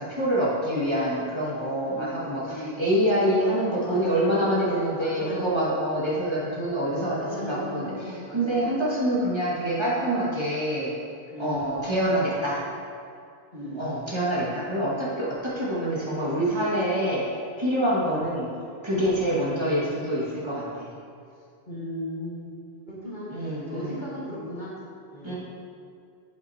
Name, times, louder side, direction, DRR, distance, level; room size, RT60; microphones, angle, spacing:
voice 1, 0.0-10.9 11.4-12.6 13.7-17.2 17.6-18.5 18.8-20.9 23.3-24.0 25.2-25.3, right 1 dB, 25° right, -8 dB, 1.8 m, -26 dB
voice 2, 1.8-2.2 2.4-2.8 3.7-4.4 5.0-5.7 7.2-8.6 11.3-11.8 13.5-13.9 18.0-18.2 21.7-22.5 22.9-23.3 23.7-24.7 25.1-25.3, equal, 50° left, -7 dB, 1.7 m, -36 dB
8.5 x 7.8 x 2.8 m, 2.4 s
omnidirectional pair, 1.1 m